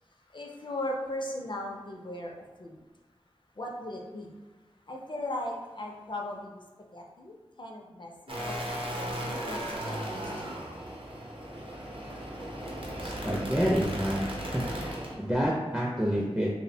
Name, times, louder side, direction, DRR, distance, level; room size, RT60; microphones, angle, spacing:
voice 1, 0.3-2.8 3.6-4.3 4.9-6.6 6.9-8.6 9.0-10.6 11.7-12.2 12.5-12.6, left 1 dB, 45° left, 1 dB, 0.4 m, -38 dB
sound 1, 8.3-15.1, equal, 55° right, 0.6 m, -36 dB
voice 2, 13.0-14.2 14.5-14.6 15.2-16.5, equal, 10° right, -4 dB, 0.4 m, -28 dB
2.5 x 2.1 x 2.6 m, 1.3 s
wide cardioid pair, 40°, 11 cm